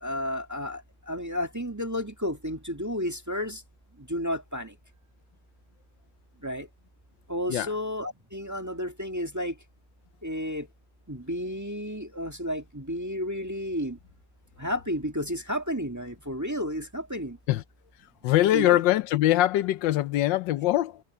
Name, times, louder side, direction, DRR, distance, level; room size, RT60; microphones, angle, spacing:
voice 1, 0.0-3.6 4.1-4.7 6.4-6.7 7.3-9.5 10.2-10.7 11.1-14.0 14.6-17.4 18.5-18.8, equal, 10° right, 1.7 m, -32 dB
voice 2, 18.2-21.0, left 14 dB, 85° left, 1.3 m, -23 dB
omnidirectional pair, 1.9 m